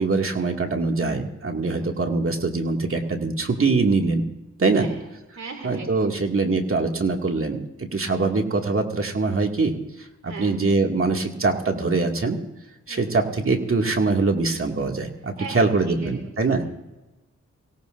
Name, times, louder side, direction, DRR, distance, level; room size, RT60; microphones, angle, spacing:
voice 1, 0.0-4.2 4.6-4.9 5.6-12.4 12.9-16.6, right 3 dB, 45° right, 2 dB, 2.3 m, -23 dB
voice 2, 5.3-6.1 10.2-10.5 12.9-13.2 15.4-16.1, right 4 dB, 65° right, 2 dB, 2.8 m, -38 dB
24.0 x 17.5 x 2.6 m, 1.0 s
cardioid pair, 60°, 29 cm